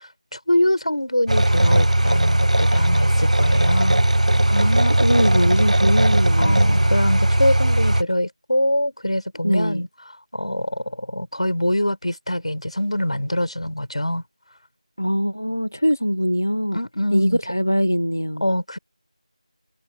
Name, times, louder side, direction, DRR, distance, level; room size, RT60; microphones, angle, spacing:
voice 1, 0.3-4.0 6.4-9.9 10.3-14.2 16.7-17.4 18.4-18.8, left 1 dB, 65° left, 4.3 m, -24 dB
sound 1, 1.3-8.0, right 1 dB, 90° right, 0.6 m, -18 dB
voice 2, 4.5-6.9 9.4-9.8 15.0-16.8 17.1-18.4, equal, 25° left, 0.3 m, -22 dB
figure-of-eight pair, 180°, 4 cm